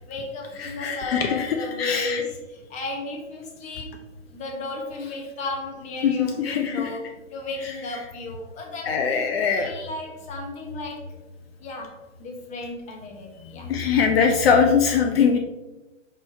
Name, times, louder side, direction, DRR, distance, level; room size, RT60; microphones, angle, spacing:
voice 1, 0.1-2.4 2.7-3.9 4.3-9.2 9.6-11.0 11.6-13.7, left 3 dB, 20° left, 1 dB, 1.2 m, -34 dB
voice 2, 0.6-2.2 6.0-6.9 8.8-9.9 13.4-15.4, left 6 dB, 50° left, 4 dB, 0.8 m, -22 dB
5.5 x 4.2 x 4.4 m, 1.1 s
hypercardioid pair, 135°, 38 cm